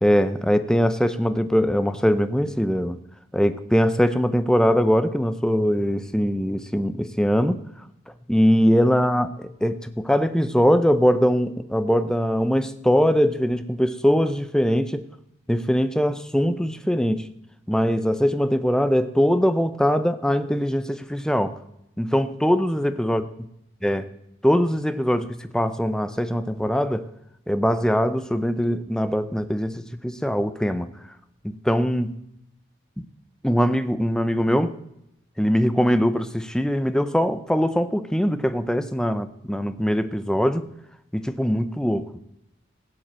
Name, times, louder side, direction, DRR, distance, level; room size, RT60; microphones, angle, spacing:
voice 1, 0.0-3.0 3.3-7.6 8.3-9.3 9.6-15.0 15.5-17.2 17.7-21.5 22.0-23.2 23.8-24.0 24.4-27.1 27.5-30.9 31.4-32.1 33.4-34.7 35.4-40.6 41.1-42.2, equal, 5° left, 12 dB, 0.6 m, -22 dB
16.0 x 7.7 x 7.5 m, 0.81 s
head